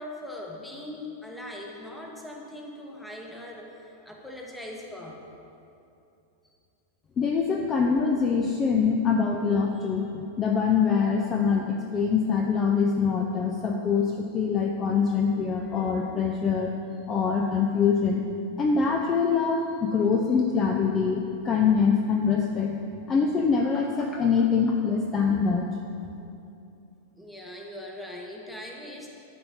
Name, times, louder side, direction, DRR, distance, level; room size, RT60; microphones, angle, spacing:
voice 1, 0.0-5.3 27.2-29.1, left 1 dB, 5° left, -1 dB, 1.1 m, -40 dB
voice 2, 7.2-16.7 17.1-18.3 18.6-22.8 23.1-25.7, left 5 dB, 25° left, 2 dB, 0.5 m, -24 dB
12.0 x 4.5 x 4.2 m, 2.7 s
figure-of-eight pair, 90°, 0 cm